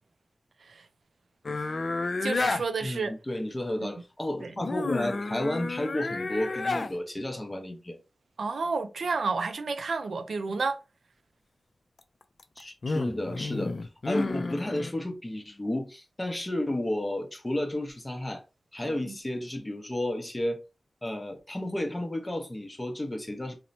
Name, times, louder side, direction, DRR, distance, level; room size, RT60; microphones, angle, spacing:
sound 1, 1.4-2.6 4.6-6.9 12.2-14.9, left 3 dB, 60° left, 0.3 m, -31 dB
voice 1, 2.2-3.1 3.8-3.9 4.4-4.5 8.4-10.8 18.8-19.2, right 4 dB, 80° right, 0.3 m, -31 dB
voice 2, 2.8-8.0 12.6-18.4 18.7-20.6 21.0-23.6, left 1 dB, 25° left, 0.6 m, -32 dB
2.9 x 2.0 x 2.6 m
cardioid pair, 60°, 0 cm